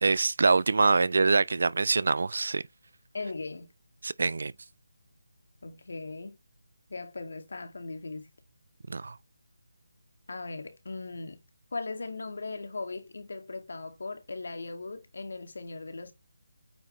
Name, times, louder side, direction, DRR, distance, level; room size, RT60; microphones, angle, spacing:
voice 1, 0.0-2.6 4.0-4.5 8.9-9.2, right 4 dB, 65° right, 0.6 m, -24 dB
voice 2, 3.1-3.7 5.6-6.4 6.9-8.3 10.3-11.4 11.7-16.1, left 3 dB, 65° left, 2.2 m, -38 dB
9.0 x 6.1 x 3.2 m
figure-of-eight pair, 165°, 0 cm